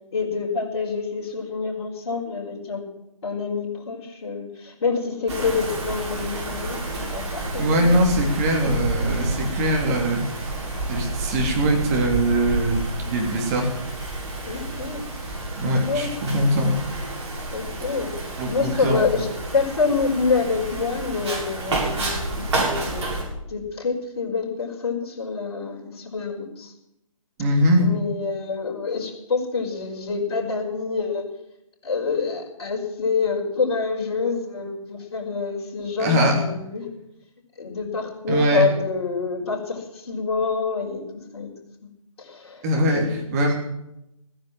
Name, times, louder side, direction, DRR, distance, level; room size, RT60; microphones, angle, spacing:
voice 1, 0.1-2.8 3.2-7.9 14.4-15.0 15.9-16.1 17.5-23.1 23.5-26.7 27.8-31.2 31.8-36.8 37.6-41.5 41.8-41.9 42.2-42.7 42.9-43.1, left 4 dB, 50° left, -1 dB, 5.1 m, -27 dB
Wind, 5.3-23.2, right 2 dB, 50° right, 7.3 m, -30 dB
voice 2, 7.6-10.2 10.9-13.7 15.6-16.7 18.4-19.0 27.4-27.8 36.0-36.4 38.3-38.6 42.6-43.5, right 1 dB, 25° right, 1 dB, 3.1 m, -22 dB
16.5 x 10.0 x 7.5 m, 0.84 s
figure-of-eight pair, 140°, 18 cm